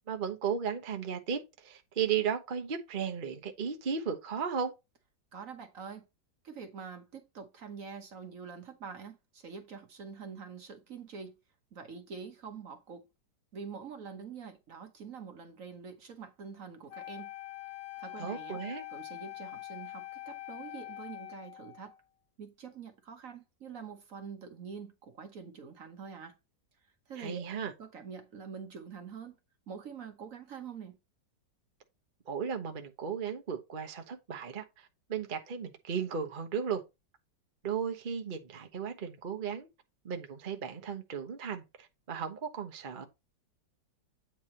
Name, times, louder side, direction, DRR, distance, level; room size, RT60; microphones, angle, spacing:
voice 1, 0.0-4.7 18.2-18.8 27.2-27.7 32.3-36.8 37.6-39.7 40.0-43.1, right 7 dB, 35° right, 1.0 m, -35 dB
voice 2, 5.3-6.1 6.4-11.4 11.7-13.1 13.5-17.3 18.0-18.6 18.9-21.9 22.4-26.4 26.8-27.4 27.8-29.4 29.7-31.0, right 6 dB, 55° right, 1.3 m, -45 dB
Wind instrument woodwind instrument, 16.9-22.0, left 15 dB, 65° left, 1.0 m, -44 dB
8.8 x 3.4 x 4.3 m
omnidirectional pair, 1.9 m